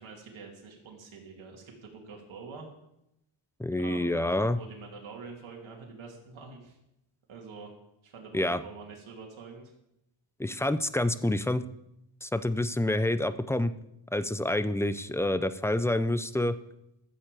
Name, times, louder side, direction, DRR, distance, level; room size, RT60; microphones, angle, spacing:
voice 1, 0.0-2.7 3.8-4.3 4.5-6.8 7.3-7.7 8.0-9.7, right 4 dB, 80° right, 0 dB, 2.7 m, -46 dB
voice 2, 3.6-4.6 8.3-8.6 10.4-11.6 12.2-13.7 14.1-16.5, left 1 dB, 5° left, 13 dB, 0.6 m, -27 dB
13.0 x 7.2 x 7.6 m, 0.84 s
wide cardioid pair, 100°, 47 cm